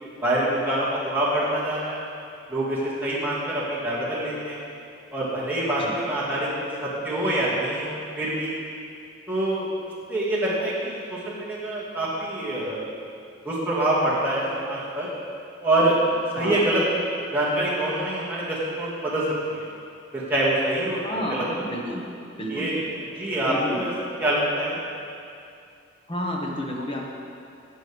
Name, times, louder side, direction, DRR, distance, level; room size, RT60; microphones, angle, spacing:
voice 1, 0.0-2.0 2.5-4.6 5.1-8.5 9.3-9.7 10.1-12.8 13.5-15.1 15.6-16.8 17.3-19.2 19.5-19.6 20.1-21.6 22.5-22.8 23.2-23.9 24.2-24.8, right 1 dB, 10° right, -9 dB, 2.1 m, -25 dB
voice 2, 16.4-16.7 21.0-22.1 22.4-22.7 23.5-23.9 26.1-27.1, equal, 25° left, -2 dB, 1.3 m, -31 dB
14.0 x 7.8 x 3.5 m, 2.5 s
head